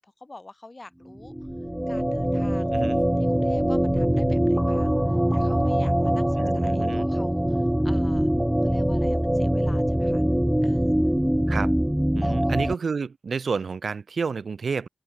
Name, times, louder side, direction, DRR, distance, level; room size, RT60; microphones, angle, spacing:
voice 1, 0.0-1.3 1.9-2.8 3.2-8.3 8.6-10.2 10.6-11.0 12.2-12.5, left 2 dB, 35° left, 4.4 m, -47 dB
sound 1, 1.2-12.7, equal, 5° right, 0.4 m, -23 dB
voice 2, 6.4-7.1 11.5-11.7 12.1-14.9, right 5 dB, 80° right, 1.2 m, -30 dB
open air
wide cardioid pair, 65°, 0 cm